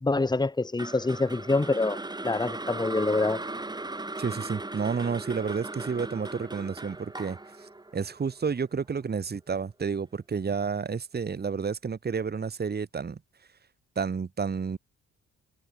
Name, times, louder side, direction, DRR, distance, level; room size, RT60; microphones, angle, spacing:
voice 1, 0.0-2.0 2.2-3.4, left 3 dB, 15° left, 1.9 m, -26 dB
sound 1, 0.8-9.0, right 2 dB, 15° right, 2.8 m, -38 dB
voice 2, 4.2-7.4 7.9-13.2 14.0-14.8, right 5 dB, 35° right, 2.0 m, -30 dB
cardioid pair, 90°, 30 cm